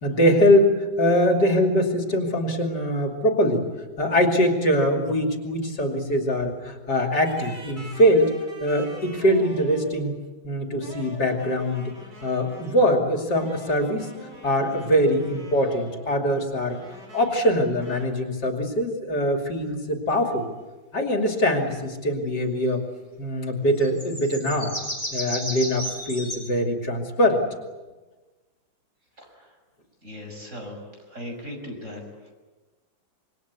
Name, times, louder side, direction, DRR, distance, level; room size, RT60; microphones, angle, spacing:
voice 1, 0.0-3.6 4.0-8.3 8.6-10.1 10.4-11.9 12.2-14.1 14.4-16.8 17.1-20.5 20.9-22.8 23.2-24.7 25.1-27.4, equal, 55° left, 3 dB, 3.2 m, -22 dB
sound 1, 7.1-10.0 10.8-12.9 13.4-16.2 16.7-17.5 17.8-18.1, right 1 dB, 55° right, 6.1 m, -44 dB
sound 2, 23.8-26.4, equal, 15° right, 5.9 m, -33 dB
voice 2, 30.0-30.8 31.1-32.0, left 1 dB, 35° right, 2 dB, 6.8 m, -37 dB
27.0 x 23.5 x 8.3 m, 1.2 s
omnidirectional pair, 2.2 m